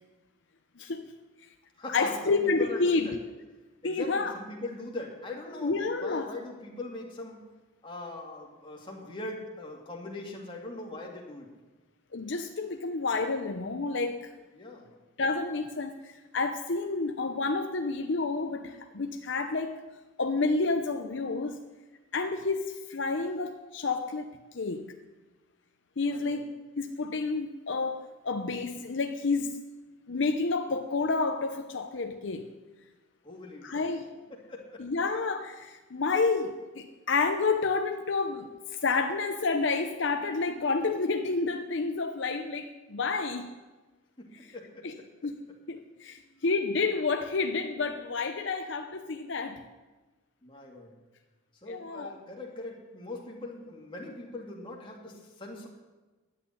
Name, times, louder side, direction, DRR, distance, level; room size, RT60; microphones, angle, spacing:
voice 1, 0.8-1.1 1.9-3.1 3.8-4.3 5.6-6.3 12.1-14.3 15.2-19.8 20.2-21.6 22.1-24.9 26.0-26.5 26.8-29.6 30.1-32.5 33.6-34.1 34.8-43.5 44.8-45.0 45.2-45.4 45.7-49.6 51.7-52.1, left 3 dB, 60° left, 6 dB, 0.7 m, -30 dB
voice 2, 1.8-3.2 3.8-7.5 7.8-11.5 14.5-14.9 26.1-26.4 33.2-33.8 34.3-34.9 44.2-45.0 50.4-50.9 51.5-55.7, left 2 dB, 25° left, -1 dB, 2.3 m, -41 dB
11.0 x 8.2 x 9.9 m, 1.2 s
head